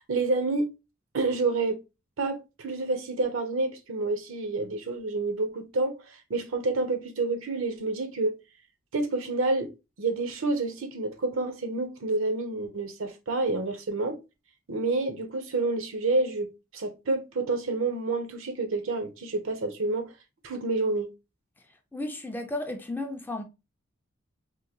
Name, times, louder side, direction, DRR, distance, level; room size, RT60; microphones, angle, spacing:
voice 1, 0.1-0.7 1.1-1.8 2.2-8.4 8.9-9.7 10.0-14.2 14.7-20.1 20.4-21.1, right 3 dB, 75° right, 0.7 m, -28 dB
voice 2, 21.9-23.4, left 2 dB, 10° left, 0.3 m, -33 dB
3.6 x 2.6 x 2.8 m
head